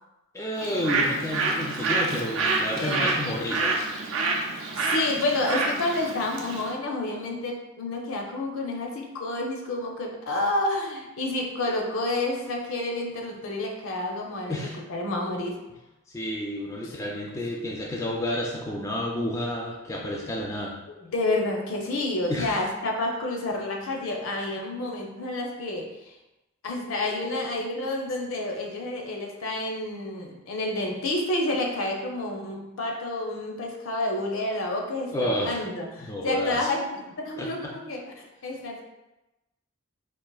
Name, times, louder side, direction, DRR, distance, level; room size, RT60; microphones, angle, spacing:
voice 1, 0.3-3.8 14.5-14.8 16.1-20.8 22.3-22.6 35.1-35.6 36.0-36.7 37.4-37.7, left 1 dB, 15° left, -2 dB, 0.3 m, -30 dB
Bird, 0.6-6.7, right 3 dB, 65° right, 0.5 m, -27 dB
voice 2, 2.7-3.3 4.7-14.5 14.9-15.6 21.0-25.9 26.6-38.8, left 2 dB, 65° left, 1 dB, 0.6 m, -29 dB
3.8 x 2.5 x 2.3 m, 0.99 s
head